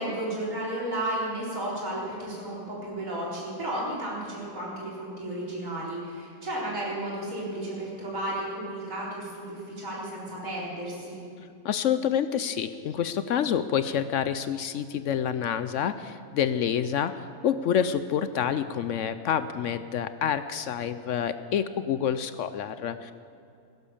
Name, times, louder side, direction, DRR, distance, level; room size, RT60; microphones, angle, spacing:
voice 1, 0.0-11.2, right 1 dB, 70° right, -5 dB, 4.6 m, -33 dB
voice 2, 11.6-23.1, left 8 dB, 70° left, 12 dB, 0.9 m, -28 dB
16.5 x 10.5 x 7.1 m, 2.6 s
omnidirectional pair, 1.4 m